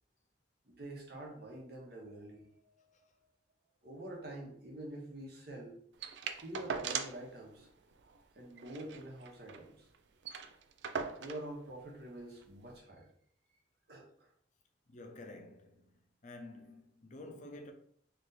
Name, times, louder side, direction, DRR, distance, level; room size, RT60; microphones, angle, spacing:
voice 1, 0.7-3.1 3.8-5.8 6.4-7.7 8.3-9.9 11.2-13.1 13.9-14.3, right 1 dB, 60° right, 1.1 m, -47 dB
sound 1, 6.0-7.3 7.6-7.7 8.0-8.2 8.6-9.7 9.9-10.0 10.2-11.5 12.4-12.5, right 6 dB, 75° right, 0.4 m, -40 dB
voice 2, 14.9-17.7, left 2 dB, 45° left, 0.5 m, -50 dB
3.2 x 2.6 x 4.0 m
head